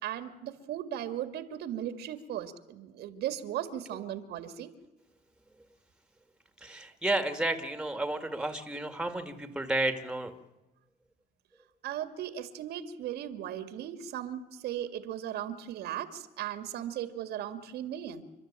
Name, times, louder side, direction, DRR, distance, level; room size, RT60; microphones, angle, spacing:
voice 1, 0.0-4.7 11.8-18.2, right 11 dB, 75° right, 10 dB, 2.1 m, -37 dB
voice 2, 6.6-10.3, right 1 dB, 5° right, 9 dB, 2.3 m, -32 dB
29.5 x 12.5 x 8.9 m, 1.0 s
cardioid pair, 110°, 17 cm